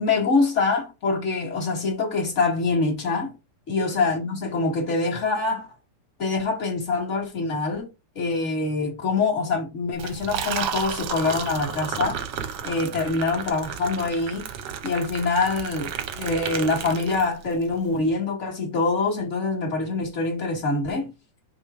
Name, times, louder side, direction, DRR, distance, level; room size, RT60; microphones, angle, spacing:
voice 1, 0.0-3.3 3.7-5.7 6.2-7.9 8.1-12.2 12.6-14.4 14.8-21.1, left 3 dB, 40° left, 1.1 m, -25 dB
Liquid, 9.9-17.6, right 8 dB, 70° right, 1.4 m, -32 dB
5.2 x 3.5 x 5.6 m
omnidirectional pair, 3.5 m